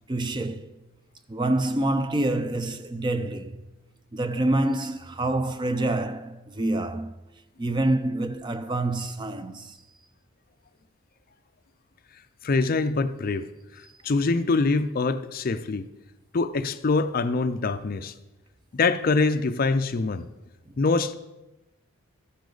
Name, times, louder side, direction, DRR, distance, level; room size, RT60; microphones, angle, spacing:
voice 1, 0.1-0.8 1.3-3.6 4.1-7.2 7.6-9.8, right 2 dB, 20° right, 0.4 m, -27 dB
voice 2, 12.4-13.5 13.7-15.9 16.3-18.1 18.7-20.3 20.8-21.1, left 3 dB, 40° left, 0.5 m, -24 dB
13.0 x 10.0 x 3.9 m
head